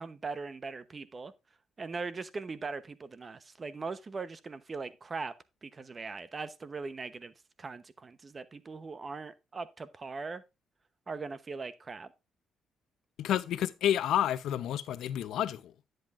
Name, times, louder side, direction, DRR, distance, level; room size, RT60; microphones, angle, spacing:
voice 1, 0.0-1.3 1.8-5.3 5.6-10.4 11.1-12.1, right 4 dB, 35° right, 0.9 m, -40 dB
voice 2, 13.2-15.7, left 11 dB, 80° left, 0.6 m, -30 dB
10.5 x 7.8 x 2.5 m
cardioid pair, 90°, 0 cm